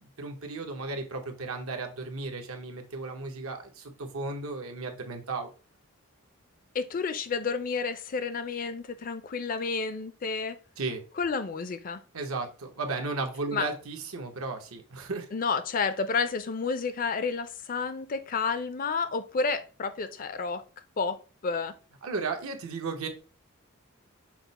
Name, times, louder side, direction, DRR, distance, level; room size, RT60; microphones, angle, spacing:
voice 1, 0.0-5.5 10.8-11.0 12.1-15.2 22.0-23.1, right 3 dB, 85° right, 0.9 m, -35 dB
voice 2, 6.7-10.6 11.2-12.0 13.5-13.7 15.3-20.6 21.0-21.7, left 5 dB, 40° left, 0.4 m, -30 dB
5.9 x 2.1 x 4.0 m
head